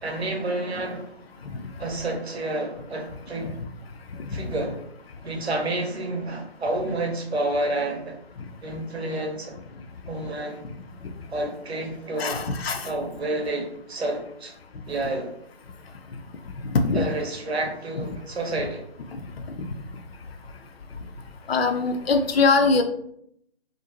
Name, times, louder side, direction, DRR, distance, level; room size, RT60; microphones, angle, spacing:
voice 1, 0.0-1.2 1.8-3.6 4.3-4.8 5.2-8.2 8.6-9.6 10.1-10.6 11.3-12.5 12.8-14.6 14.9-15.3 16.9-18.9, right 2 dB, 75° right, 2 dB, 0.8 m, -29 dB
voice 2, 12.2-12.9 16.8-17.0 18.0-18.1 21.5-22.8, left 4 dB, 70° left, 5 dB, 0.5 m, -22 dB
2.5 x 2.1 x 2.8 m, 0.72 s
figure-of-eight pair, 155°, 32 cm